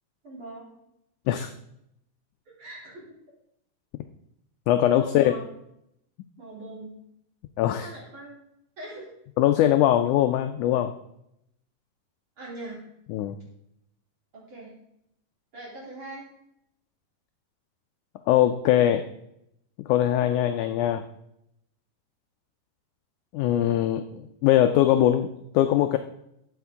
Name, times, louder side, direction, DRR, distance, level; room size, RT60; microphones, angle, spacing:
voice 1, 0.2-0.7 2.6-3.0 4.9-5.4 6.4-6.9 7.6-8.4 8.8-9.1 12.4-12.8 14.3-14.7 15.5-16.3, right 2 dB, 35° right, -3 dB, 3.5 m, -41 dB
voice 2, 4.7-5.3 7.6-7.9 9.4-10.9 13.1-13.4 18.3-19.1 19.9-21.0 23.3-26.0, left 12 dB, 85° left, 8 dB, 1.7 m, -21 dB
12.5 x 8.3 x 3.6 m, 0.78 s
omnidirectional pair, 4.0 m